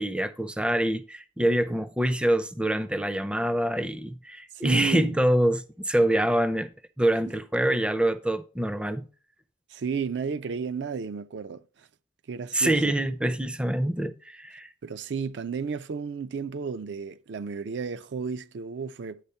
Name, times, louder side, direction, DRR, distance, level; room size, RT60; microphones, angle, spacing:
voice 1, 0.0-6.7 7.0-9.1 12.5-14.7, right 1 dB, 5° right, 0.4 m, -25 dB
voice 2, 4.5-5.2 9.7-11.6 12.3-12.9 14.8-19.2, right 6 dB, 65° right, 0.4 m, -32 dB
10.0 x 3.5 x 5.5 m
head